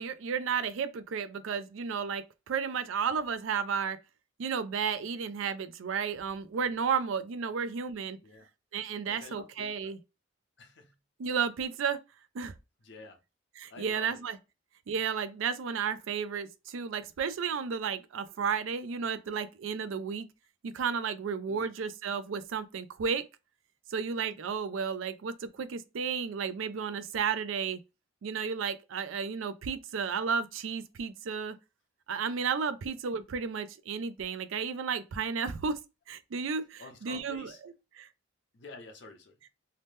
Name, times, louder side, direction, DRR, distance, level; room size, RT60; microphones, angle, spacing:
voice 1, 0.0-4.0 4.4-8.2 8.7-10.0 11.2-12.0 12.3-12.5 13.6-14.4 14.9-20.3 20.6-23.3 23.9-27.8 28.2-31.6 32.1-35.8 36.1-38.1, right 6 dB, 80° right, 0.4 m, -33 dB
voice 2, 9.0-9.9 10.6-11.0 12.8-13.2 13.7-14.2 21.5-21.7 36.8-37.6 38.5-39.4, left 3 dB, 60° left, 0.7 m, -49 dB
2.8 x 2.1 x 3.2 m
head